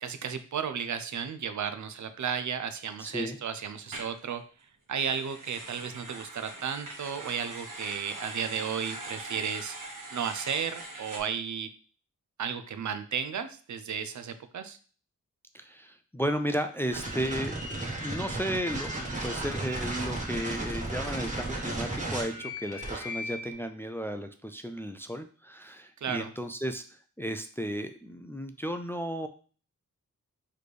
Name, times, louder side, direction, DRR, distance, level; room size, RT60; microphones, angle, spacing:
voice 1, 0.0-4.4 4.9-9.8 10.1-11.7 12.4-14.8 26.0-26.3, right 7 dB, 65° right, 9 dB, 0.5 m, -34 dB
voice 2, 3.0-3.4 15.5-29.3, equal, 10° left, 7 dB, 0.3 m, -34 dB
sound 1, 3.9-4.1 4.9-11.2, right 2 dB, 90° right, 1.1 m, -42 dB
sound 2, 16.9-23.5, right 1 dB, 25° right, 1.3 m, -34 dB
4.1 x 3.2 x 3.3 m, 0.40 s
wide cardioid pair, 90°, 31 cm